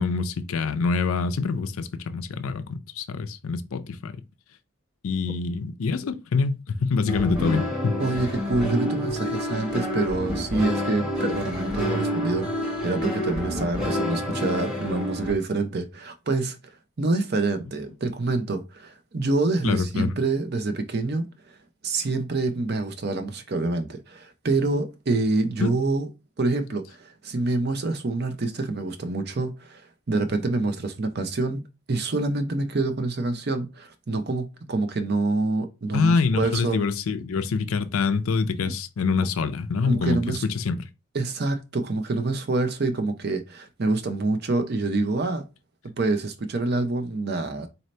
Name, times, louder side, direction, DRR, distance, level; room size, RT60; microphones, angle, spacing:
voice 1, 0.0-4.2 5.0-8.0 19.6-20.1 25.6-25.7 35.9-40.2 40.5-40.8, left 4 dB, 80° left, 0.4 m, -25 dB
sound 1, 7.1-15.3, equal, 5° right, 1.1 m, -28 dB
voice 2, 8.0-16.6 17.0-21.3 21.8-26.1 26.4-29.8 30.1-31.6 31.9-36.8 39.8-40.4 41.1-45.4 46.0-47.7, right 2 dB, 50° right, 0.6 m, -26 dB
4.1 x 2.7 x 3.1 m
head